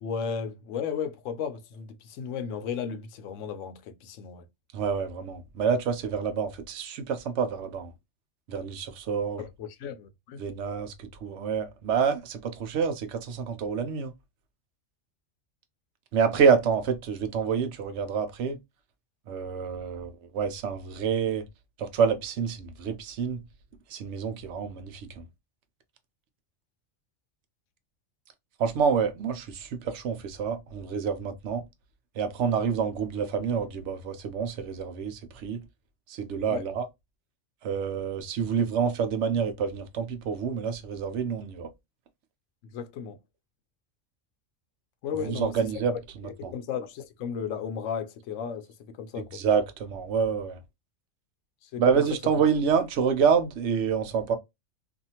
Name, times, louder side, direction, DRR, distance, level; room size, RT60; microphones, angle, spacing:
voice 1, 0.0-4.4 9.4-10.4 36.5-36.6 42.7-43.2 45.0-45.5 46.5-49.4 51.6-52.0, left 7 dB, 75° left, 0.9 m, -34 dB
voice 2, 4.7-7.9 8.5-9.4 10.4-14.1 16.1-18.6 19.3-21.4 21.8-23.4 23.9-25.2 28.6-31.6 32.2-35.6 36.1-36.9 37.6-41.7 45.1-46.5 49.3-50.6 51.8-54.4, right 6 dB, 70° right, 0.9 m, -27 dB
2.6 x 2.4 x 2.8 m
omnidirectional pair, 1.3 m